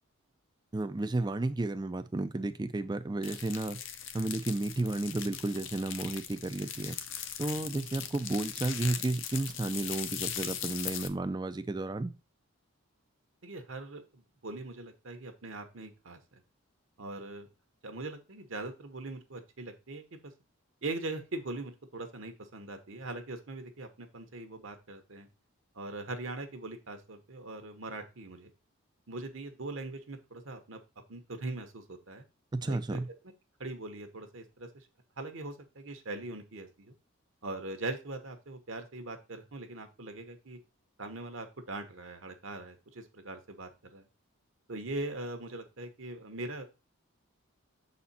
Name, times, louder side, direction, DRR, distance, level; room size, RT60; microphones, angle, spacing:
voice 1, 0.7-3.8 4.1-7.0 7.4-12.1 32.5-33.1, right 2 dB, 20° right, 0.4 m, -32 dB
sound 1, 3.2-11.1, left 9 dB, 60° left, 0.7 m, -40 dB
voice 2, 13.4-16.4 17.0-17.5 17.8-20.3 20.8-25.3 25.7-28.5 29.1-30.8 31.1-32.2 32.6-33.0 33.6-34.9 35.2-36.9 37.4-40.6 41.0-44.1 44.7-46.7, right 2 dB, 65° right, 1.1 m, -41 dB
6.7 x 4.3 x 4.1 m
head